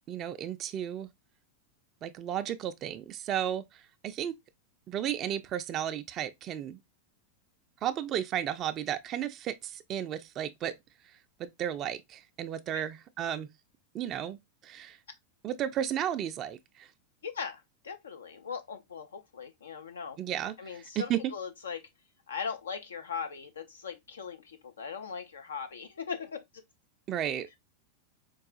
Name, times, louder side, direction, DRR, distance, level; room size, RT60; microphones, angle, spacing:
voice 1, 0.1-1.1 2.0-3.6 4.0-4.4 4.9-6.8 7.8-10.8 11.4-13.5 13.9-14.4 14.6-15.0 15.4-16.9 20.2-21.2 27.1-27.6, right 10 dB, 30° right, 0.3 m, -33 dB
voice 2, 17.2-20.2 20.6-21.9 22.3-26.4, left 6 dB, 65° left, 0.4 m, -39 dB
4.7 x 2.3 x 2.4 m
figure-of-eight pair, 90°, 0 cm